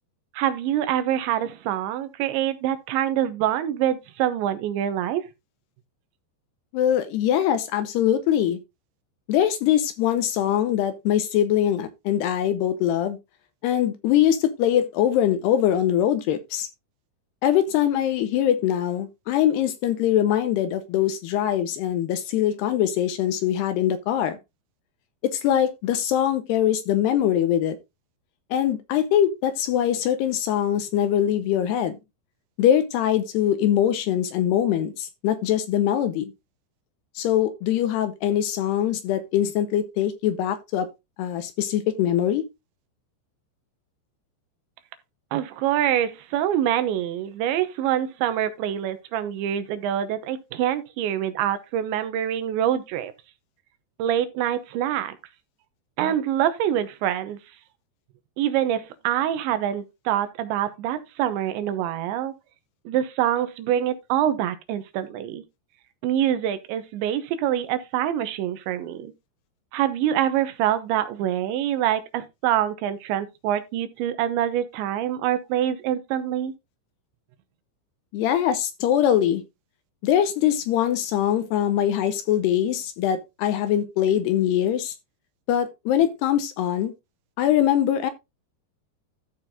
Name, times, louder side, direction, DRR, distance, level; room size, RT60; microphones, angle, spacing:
voice 1, 0.3-5.2 45.3-53.1 54.0-55.2 56.0-57.4 58.4-62.3 62.9-65.4 66.0-69.1 69.7-76.5, right 11 dB, 85° right, 3.2 m, -25 dB
voice 2, 6.7-8.6 9.3-13.2 13.6-16.7 17.4-24.4 25.2-27.8 28.5-32.0 32.6-36.3 37.2-40.9 41.2-42.4 78.1-79.4 80.0-84.9 85.5-86.9 87.4-88.1, left 10 dB, 80° left, 2.6 m, -22 dB
13.5 x 4.6 x 3.6 m
omnidirectional pair, 5.3 m